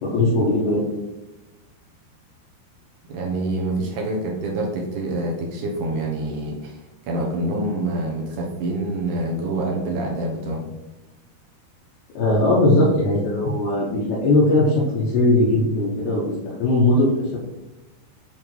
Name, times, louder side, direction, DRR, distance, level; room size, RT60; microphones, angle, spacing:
voice 1, 0.0-0.8 12.1-16.3 16.6-17.4, left 2 dB, 75° left, -7 dB, 3.3 m, -19 dB
voice 2, 3.1-10.7, right 2 dB, 70° right, -1 dB, 2.1 m, -26 dB
8.2 x 3.6 x 4.6 m, 1.0 s
omnidirectional pair, 4.6 m